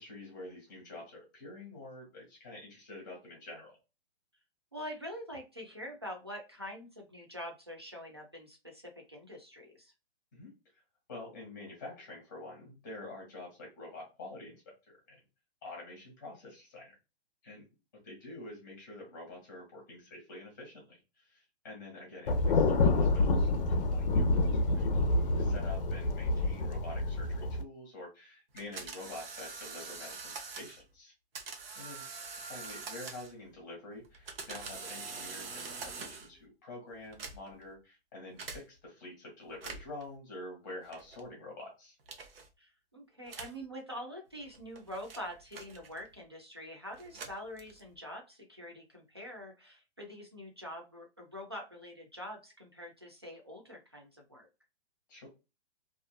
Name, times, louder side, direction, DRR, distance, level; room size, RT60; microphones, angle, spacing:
voice 1, 0.0-3.7 10.3-10.5 11.1-15.2 15.6-17.0 17.4-17.6 18.0-31.1 31.7-32.0 32.5-42.0 55.1-55.3, left 2 dB, 20° left, -2 dB, 0.9 m, -47 dB
voice 2, 4.7-9.9 42.6-54.5, equal, 25° right, 0 dB, 0.3 m, -45 dB
Thunder, 22.3-27.6, left 2 dB, 55° left, 0.5 m, -28 dB
sound 1, 28.6-30.8 31.3-33.5 34.0-36.4 37.0-37.7 38.4-38.6 39.5-40.0 40.9-41.2 42.1-42.5 43.3-43.6 44.4-46.2 46.9-48.0, right 4 dB, 60° right, 0.7 m, -44 dB
2.5 x 2.4 x 2.2 m, 0.28 s
hypercardioid pair, 180°, 32 cm